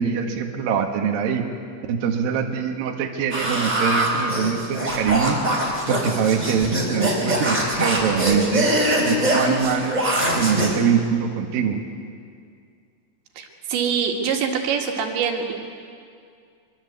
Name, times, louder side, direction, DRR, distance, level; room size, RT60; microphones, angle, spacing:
voice 1, 0.0-1.5 1.9-5.4 5.9-8.7 9.0-10.0 10.4-11.8, right 7 dB, 60° right, 3 dB, 3.0 m, -23 dB
sound 1, 3.3-10.8, equal, 10° right, 3.8 m, -23 dB
voice 2, 13.4-15.5, right 7 dB, 80° right, 2 dB, 4.2 m, -24 dB
24.5 x 23.5 x 8.2 m, 2.2 s
omnidirectional pair, 5.2 m